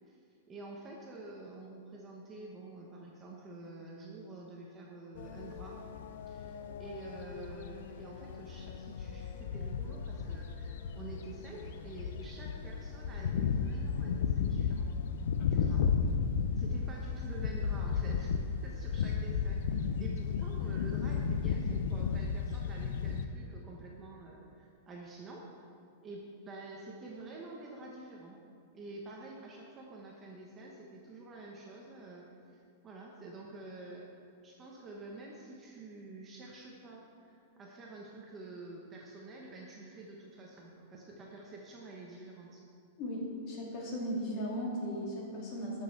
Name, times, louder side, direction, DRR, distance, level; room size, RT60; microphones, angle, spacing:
voice 1, 0.5-5.8 6.3-14.9 15.5-15.9 16.6-18.4 18.6-25.4 26.0-28.4 28.7-34.1 34.4-42.6, right 2 dB, 15° right, -2 dB, 1.0 m, -48 dB
sound 1, 5.2-23.3, left 6 dB, 70° left, 0.6 m, -34 dB
voice 2, 43.0-45.8, equal, 35° left, -3 dB, 2.7 m, -37 dB
12.0 x 6.5 x 5.9 m, 2.4 s
supercardioid pair, 165°, 0 cm